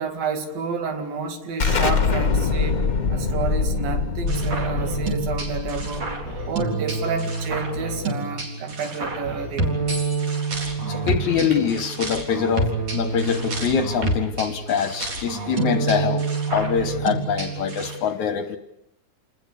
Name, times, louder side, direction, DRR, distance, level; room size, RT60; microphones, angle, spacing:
voice 1, 0.0-6.1 6.5-9.8, right 5 dB, 70° right, 6 dB, 4.0 m, -30 dB
Explosion, 1.6-7.0, left 5 dB, 35° left, 1.5 m, -24 dB
sound 1, 4.3-18.0, right 3 dB, 45° right, 5.0 m, -27 dB
voice 2, 10.6-18.6, left 7 dB, 65° left, 10 dB, 2.2 m, -24 dB
sound 2, 11.0-11.9 13.0-14.4, right 2 dB, 90° right, 6.1 m, -37 dB
28.5 x 20.0 x 8.4 m, 0.78 s
omnidirectional pair, 4.3 m